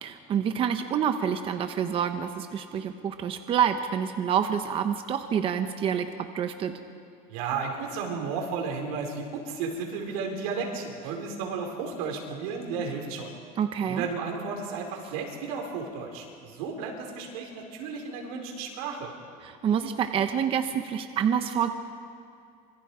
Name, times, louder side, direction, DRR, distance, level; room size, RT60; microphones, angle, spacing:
voice 1, 0.0-6.7 13.6-14.1 19.4-21.7, right 8 dB, 30° right, 7 dB, 1.0 m, -27 dB
voice 2, 7.3-13.3 13.9-19.1, right 5 dB, 90° right, 1 dB, 4.7 m, -33 dB
26.0 x 23.5 x 5.0 m, 2.3 s
cardioid pair, 160°, 18 cm